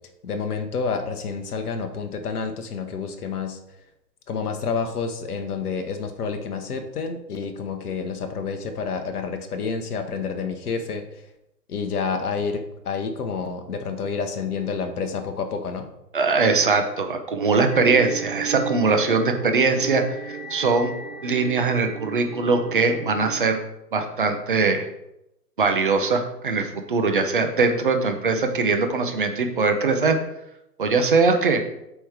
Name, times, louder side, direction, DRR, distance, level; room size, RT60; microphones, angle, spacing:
voice 1, 0.2-3.6 4.3-11.2 11.7-15.9, left 5 dB, 65° left, 6 dB, 1.1 m, -29 dB
voice 2, 16.1-20.9 21.2-23.6 23.9-24.9 25.6-30.2 30.8-31.6, right 4 dB, 35° right, 5 dB, 0.6 m, -21 dB
sound 1, 17.7-23.4, right 6 dB, 75° right, 1.4 m, -35 dB
7.8 x 3.1 x 4.8 m, 0.86 s
hypercardioid pair, 150°, 50 cm